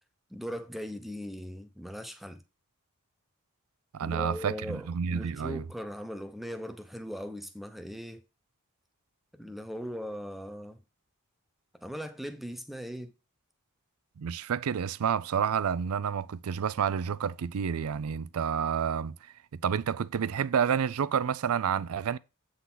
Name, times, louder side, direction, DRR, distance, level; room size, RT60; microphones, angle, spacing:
voice 1, 0.3-2.4 4.0-8.2 9.3-10.8 11.8-13.1, equal, ahead, 0.7 m, -39 dB
voice 2, 3.9-5.6 14.2-19.1 19.5-22.2, right 7 dB, 85° right, 0.4 m, -29 dB
8.1 x 3.9 x 6.0 m
head